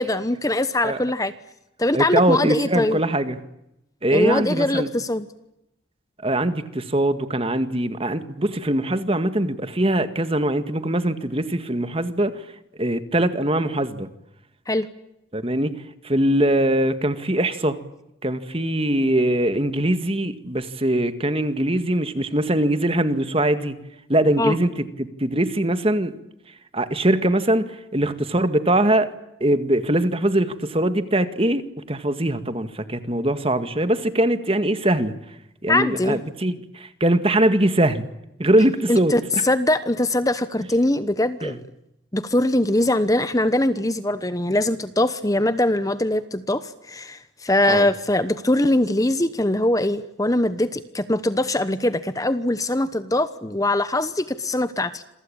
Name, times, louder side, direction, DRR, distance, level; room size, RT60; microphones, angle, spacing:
voice 1, 0.0-1.3 1.8-3.0 4.1-5.3 14.7-14.9 24.4-24.6 35.7-36.2 38.9-41.6 42.1-55.0, left 1 dB, 15° left, 12 dB, 1.0 m, -22 dB
voice 2, 1.9-3.4 4.0-4.9 6.2-12.5 12.8-14.1 15.3-15.8 16.0-17.8 18.2-23.7 24.1-26.1 26.7-29.1 29.4-31.6 31.9-35.1 35.6-38.1 38.4-39.4 41.4-41.6 47.7-47.9, right 1 dB, 30° right, 10 dB, 1.9 m, -22 dB
27.5 x 23.5 x 8.9 m, 0.86 s
head